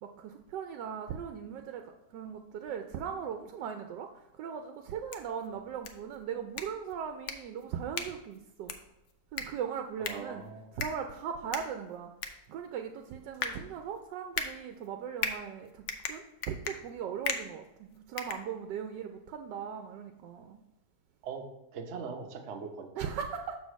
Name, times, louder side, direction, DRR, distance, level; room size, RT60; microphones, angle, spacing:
voice 1, 0.0-8.7 9.3-10.4 10.7-12.1 12.5-20.6 23.0-23.6, right 7 dB, 90° right, 5 dB, 1.2 m, -39 dB
sound 1, 4.9-19.0, left 6 dB, 60° left, 0.8 m, -40 dB
voice 2, 10.0-10.7 21.2-22.9, right 5 dB, 50° right, 4 dB, 0.9 m, -41 dB
6.2 x 4.0 x 6.1 m, 0.92 s
omnidirectional pair, 1.8 m